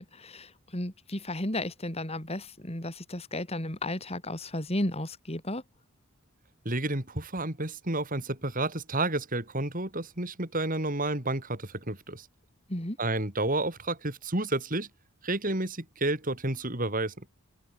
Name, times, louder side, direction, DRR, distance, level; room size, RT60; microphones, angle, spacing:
voice 1, 0.0-5.6 12.7-13.0, left 1 dB, 25° left, 3.7 m, -34 dB
voice 2, 6.6-12.3 13.0-14.9 15.2-17.2, right 2 dB, 40° right, 4.1 m, -30 dB
open air
head